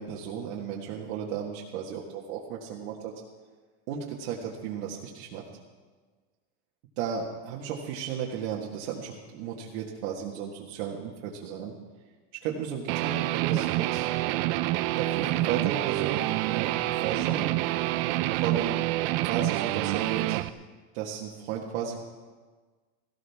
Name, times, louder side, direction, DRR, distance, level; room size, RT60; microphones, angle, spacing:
voice 1, 0.0-3.1 3.9-5.4 7.0-11.7 12.4-14.1 15.0-17.5 18.4-18.8 19.2-20.4 20.9-22.0, right 8 dB, 75° right, -3 dB, 1.7 m, -34 dB
Guitar, 12.9-20.5, right 17 dB, 55° right, 0.5 m, -27 dB
17.5 x 15.5 x 3.6 m, 1.4 s
cardioid pair, 170°, 35 cm